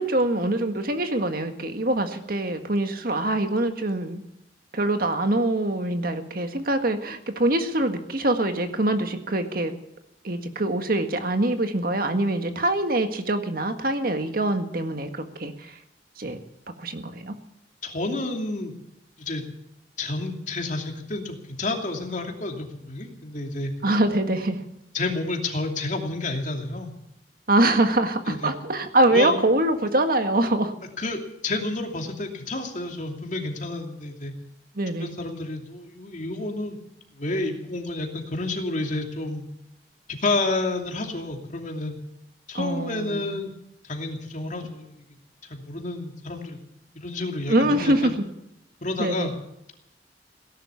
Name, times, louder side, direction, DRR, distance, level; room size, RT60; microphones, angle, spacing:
voice 1, 0.0-4.2 4.7-9.7 10.2-15.8 16.2-16.4 16.8-17.3 23.8-24.6 27.5-30.7 34.8-35.1 42.5-43.4 47.5-48.2 49.0-49.3, right 1 dB, 55° right, 7 dB, 1.7 m, -24 dB
voice 2, 17.8-18.7 19.2-19.4 20.0-23.7 24.9-26.9 28.3-28.5 29.1-29.4 31.0-34.3 35.0-36.8 37.1-39.5 40.1-42.0 42.5-43.5 43.8-45.0 45.4-46.6 46.9-48.2 48.8-49.4, left 2 dB, 45° left, 3 dB, 2.7 m, -30 dB
17.5 x 11.5 x 7.1 m, 0.83 s
head